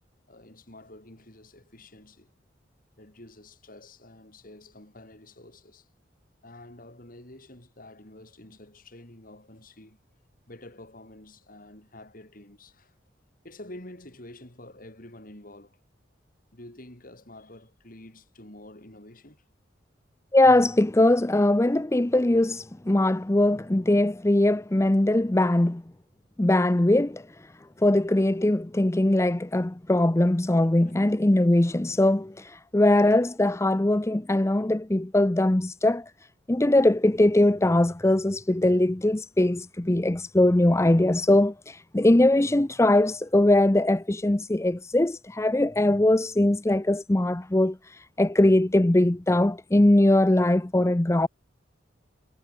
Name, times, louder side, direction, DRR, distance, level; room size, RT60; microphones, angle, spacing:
voice 1, 0.3-2.3 3.0-5.9 6.4-10.0 10.5-12.9 13.4-15.8 16.5-19.4 30.8-31.1, left 1 dB, 50° left, 4.3 m, -48 dB
voice 2, 20.3-25.8 26.4-27.5 27.8-36.1 36.5-51.3, left 1 dB, 15° left, 0.6 m, -21 dB
head